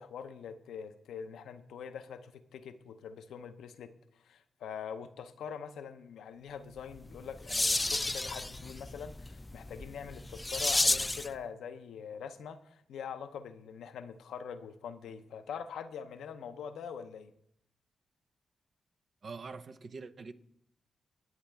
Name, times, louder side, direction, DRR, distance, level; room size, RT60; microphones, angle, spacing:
voice 1, 0.0-17.3, left 7 dB, 80° left, 0.7 m, -44 dB
sound 1, 6.9-11.4, left 2 dB, 25° left, 0.3 m, -32 dB
voice 2, 19.2-20.3, right 4 dB, 55° right, 0.7 m, -44 dB
19.0 x 7.5 x 3.4 m
supercardioid pair, 45°, 0 cm